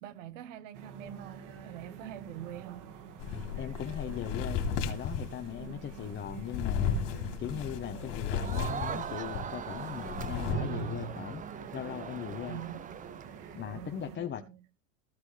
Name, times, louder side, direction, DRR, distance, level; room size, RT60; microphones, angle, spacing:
voice 1, 0.0-2.9 5.6-5.8 10.1-10.5 12.5-12.8 13.7-14.6, right 11 dB, 65° right, 1.5 m, -45 dB
sound 1, 0.7-14.2, right 6 dB, 50° right, 2.4 m, -45 dB
sound 2, 3.2-9.5 9.8-10.5, left 6 dB, 50° left, 3.3 m, -34 dB
voice 2, 3.6-7.1 7.4-11.4 11.7-12.6 13.5-14.4, left 9 dB, 30° left, 1.2 m, -39 dB
Crowd, 8.3-13.6, right 8 dB, 20° right, 0.7 m, -41 dB
15.0 x 9.5 x 3.4 m
hypercardioid pair, 100°, 39 cm